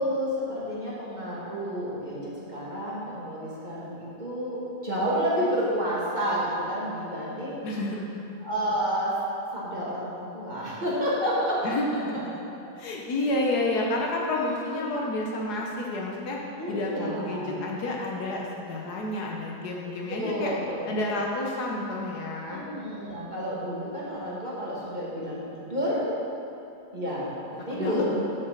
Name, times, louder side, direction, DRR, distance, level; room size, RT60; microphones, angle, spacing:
voice 1, 0.0-7.6 8.4-9.1 9.5-12.2 13.2-13.4 14.3-14.9 16.5-17.6 20.2-20.9 22.5-26.1 26.9-28.2, equal, 25° right, -8 dB, 1.6 m, -30 dB
voice 2, 7.6-8.2 11.6-12.2 12.8-16.4 16.7-20.5 20.9-22.6 27.7-28.2, left 2 dB, 65° left, -1 dB, 1.4 m, -30 dB
6.4 x 6.1 x 6.3 m, 2.9 s
omnidirectional pair, 1.9 m